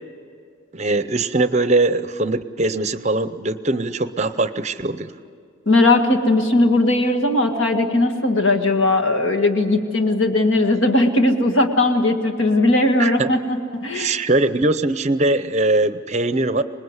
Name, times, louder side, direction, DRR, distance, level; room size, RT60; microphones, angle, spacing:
voice 1, 0.7-5.1 13.0-13.3 13.9-16.6, right 2 dB, 35° right, 12 dB, 0.6 m, -21 dB
voice 2, 5.7-14.1, left 2 dB, 65° left, 5 dB, 1.9 m, -18 dB
25.5 x 20.0 x 8.1 m, 2.3 s
head